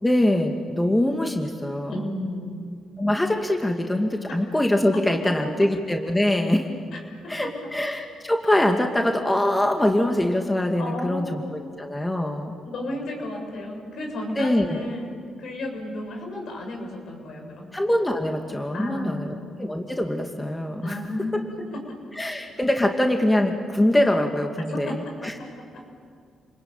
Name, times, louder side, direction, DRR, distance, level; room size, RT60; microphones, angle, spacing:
voice 1, 0.0-2.1 3.0-6.7 7.3-12.6 14.4-14.8 17.7-21.0 22.1-25.0 25.2-25.3, left 1 dB, 15° left, 3 dB, 2.4 m, -23 dB
voice 2, 1.9-2.6 7.2-7.4 10.8-11.7 12.6-17.7 18.7-19.5 20.8-21.4 24.7-24.9 25.2-25.3 25.6-25.8, left 1 dB, 70° left, 2 dB, 7.3 m, -33 dB
29.0 x 20.5 x 9.1 m, 2.1 s
cardioid pair, 70°, 0 cm